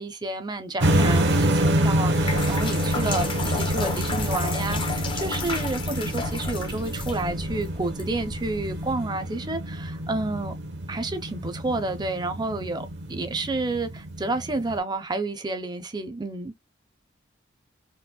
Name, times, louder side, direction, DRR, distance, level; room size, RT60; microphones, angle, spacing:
voice 1, 0.0-10.5 10.9-16.5, right 2 dB, 25° right, 0.5 m, -30 dB
sound 1, 0.8-14.8, right 1 dB, 65° right, 0.7 m, -27 dB
sound 2, 2.0-8.9, left 4 dB, 25° left, 0.5 m, -33 dB
4.3 x 2.1 x 2.3 m
head